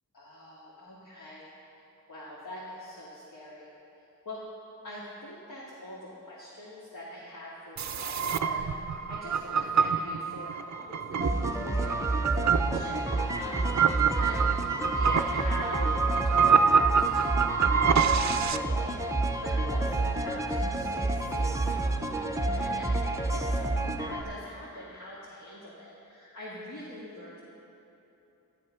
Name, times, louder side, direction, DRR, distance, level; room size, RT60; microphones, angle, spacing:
voice 1, 0.1-1.4 2.1-3.7 4.3-4.4 4.8-8.6 8.9-27.4, left 1 dB, 60° left, -7 dB, 2.3 m, -44 dB
sound 1, 7.8-18.6, right 6 dB, 50° right, 0.5 m, -27 dB
sound 2, 11.2-24.2, right 2 dB, 10° right, 0.7 m, -29 dB
13.0 x 11.5 x 5.8 m, 2.9 s
wide cardioid pair, 130°, 35 cm